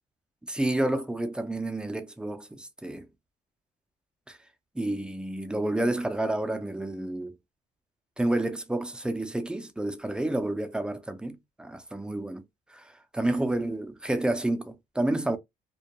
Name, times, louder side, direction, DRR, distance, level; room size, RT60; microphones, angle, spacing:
voice 1, 0.4-3.1 4.3-4.4 4.8-7.4 8.2-15.4, right 1 dB, 5° right, 0.4 m, -30 dB
2.2 x 2.2 x 2.7 m
cardioid pair, 110°, 17 cm